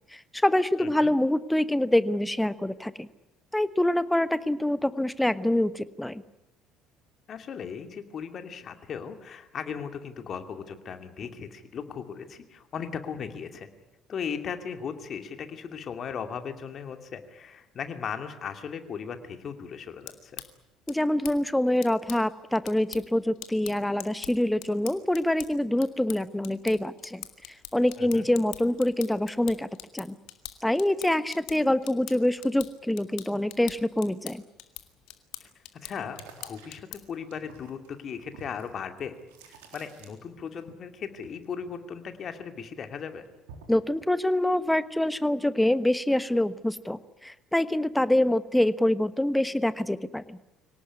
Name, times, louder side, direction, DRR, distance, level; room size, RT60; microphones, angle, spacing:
voice 1, 0.1-3.1 3.5-6.2 20.9-27.2 27.7-29.7 29.9-30.2 30.6-34.4 43.7-50.4, left 1 dB, 5° left, 14 dB, 1.2 m, -25 dB
voice 2, 0.8-1.1 7.3-13.7 14.1-20.4 28.0-28.3 35.4-39.1 39.4-43.2, left 7 dB, 45° left, 7 dB, 2.6 m, -37 dB
sound 1, 19.9-37.2, left 14 dB, 65° left, 1.9 m, -45 dB
sound 2, 36.1-40.6 40.9-42.5 42.9-43.9, right 5 dB, 75° right, 3.7 m, -51 dB
24.5 x 18.0 x 9.7 m, 0.95 s
hypercardioid pair, 60°, 0 cm